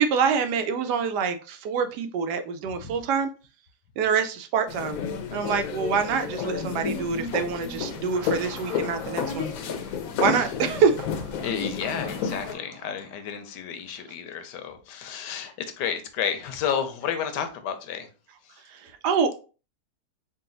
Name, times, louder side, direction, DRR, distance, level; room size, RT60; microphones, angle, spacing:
voice 1, 0.0-3.3 4.0-5.0 5.3-9.5 10.2-11.0 18.7-19.3, right 6 dB, 85° right, 1.2 m, -25 dB
sound 1, 4.7-12.5, left 6 dB, 70° left, 0.9 m, -31 dB
sound 2, 7.9-13.7, right 5 dB, 65° right, 0.8 m, -47 dB
voice 2, 11.4-18.1, left 8 dB, 90° left, 1.3 m, -31 dB
3.9 x 2.3 x 3.7 m
omnidirectional pair, 1.8 m